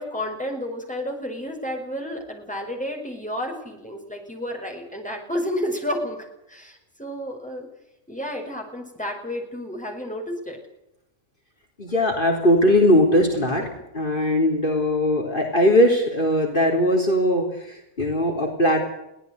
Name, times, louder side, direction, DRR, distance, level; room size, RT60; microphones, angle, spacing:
voice 1, 0.0-7.7 8.1-10.6, equal, 5° left, 1 dB, 6.3 m, -31 dB
voice 2, 11.8-13.7 13.9-18.8, left 1 dB, 45° left, 1 dB, 3.9 m, -20 dB
23.0 x 18.0 x 8.2 m, 0.83 s
omnidirectional pair, 1.3 m